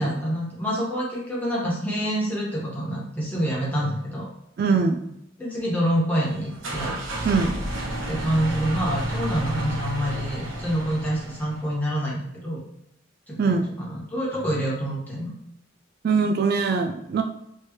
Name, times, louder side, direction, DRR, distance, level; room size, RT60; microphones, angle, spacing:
voice 1, 0.0-4.3 5.4-7.3 8.1-12.6 13.3-15.3, equal, 10° left, -7 dB, 1.4 m, -27 dB
voice 2, 4.6-5.0 7.2-7.5 13.4-13.6 16.0-17.2, right 4 dB, 50° right, 5 dB, 0.3 m, -22 dB
sound 1, 6.1-11.7, right 1 dB, 80° right, 1.0 m, -31 dB
4.3 x 3.3 x 3.1 m, 0.80 s
head